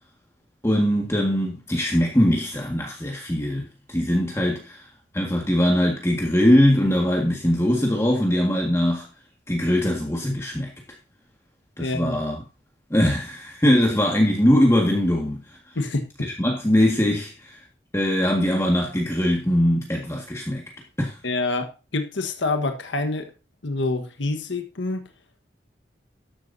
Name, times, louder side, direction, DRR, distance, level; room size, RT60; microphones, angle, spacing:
voice 1, 0.6-4.9 5.1-9.1 9.5-10.7 11.8-12.4 12.9-15.6 16.4-17.6 17.9-20.6 21.0-21.2, equal, 15° left, 1.8 m, -21 dB
voice 2, 11.8-12.2 15.7-16.1 21.2-23.3 23.6-25.1, left 2 dB, 85° left, 1.4 m, -27 dB
13.0 x 11.0 x 2.7 m
head